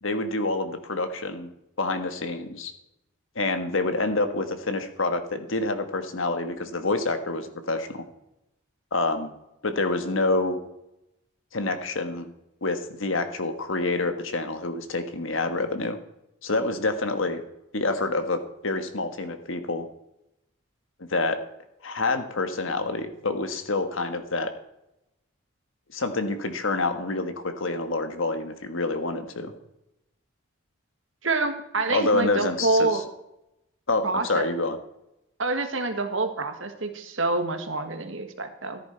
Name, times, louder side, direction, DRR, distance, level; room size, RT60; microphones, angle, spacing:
voice 1, 0.0-1.5 1.8-2.7 3.3-8.0 8.9-9.3 9.6-10.6 11.5-12.3 12.6-16.0 16.4-17.4 17.7-19.9 21.1-21.4 21.8-24.5 25.9-29.5 31.9-33.0 33.9-34.8, left 2 dB, 70° left, 8 dB, 1.4 m, -27 dB
voice 2, 31.2-33.1 34.0-34.5 35.4-38.8, right 3 dB, 65° right, 7 dB, 1.6 m, -27 dB
14.0 x 10.5 x 4.4 m, 0.86 s
head